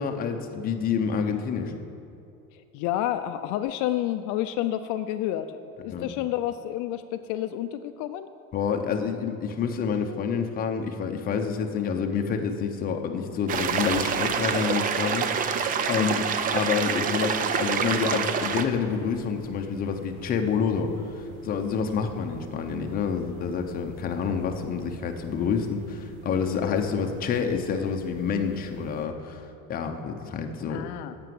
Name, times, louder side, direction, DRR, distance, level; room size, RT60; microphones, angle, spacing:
voice 1, 0.0-1.8 5.9-6.1 8.5-16.3 16.5-29.4 29.7-30.9, left 6 dB, 25° left, 4 dB, 0.7 m, -28 dB
voice 2, 2.5-8.3 15.9-16.2 26.5-26.8 30.7-31.1, left 12 dB, 65° left, 9 dB, 0.5 m, -30 dB
sound 1, 13.5-18.7, right 7 dB, 25° right, 0.4 m, -26 dB
sound 2, 18.4-29.1, right 1 dB, 90° right, 1.4 m, -47 dB
11.0 x 6.8 x 7.7 m, 2.6 s
cardioid pair, 180°, 33 cm